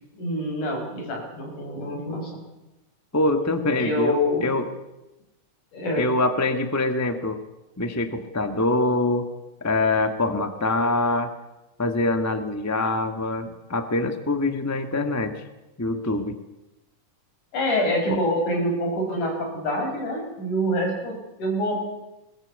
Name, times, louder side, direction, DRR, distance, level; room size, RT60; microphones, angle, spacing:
voice 1, 0.2-2.4 3.8-4.5 5.7-6.1 17.5-21.8, equal, 70° left, 1 dB, 7.5 m, -26 dB
voice 2, 3.1-4.7 6.0-7.4 7.8-9.3 9.6-11.3 11.8-15.4 15.8-16.4 18.1-18.2, left 2 dB, 10° left, 7 dB, 0.8 m, -24 dB
21.5 x 21.0 x 8.3 m, 0.96 s
omnidirectional pair, 3.7 m